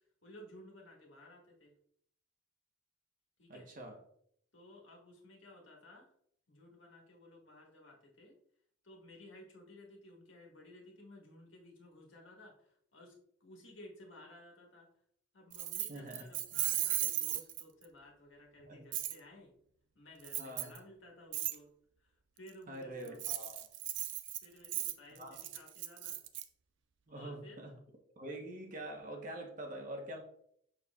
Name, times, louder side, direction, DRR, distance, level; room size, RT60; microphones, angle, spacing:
voice 1, 0.0-1.7 3.4-3.7 4.5-6.0 6.5-8.3 8.8-13.1 13.4-14.9 15.3-19.6 20.0-21.7 22.0-22.1 22.4-23.2 24.4-26.2 27.1-27.6, left 1 dB, 90° left, -1 dB, 1.9 m, -56 dB
voice 2, 3.5-4.0 15.9-16.2 18.6-18.8 20.4-20.7 22.7-23.6 25.2-25.3 27.1-27.7 28.2-30.2, right 1 dB, 45° right, 2 dB, 1.2 m, -45 dB
Keys jangling, 15.5-17.9 18.9-19.2 20.2-20.8 21.3-21.6 23.1-26.4, right 13 dB, 70° right, 0.5 m, -36 dB
6.3 x 6.2 x 2.4 m, 0.66 s
head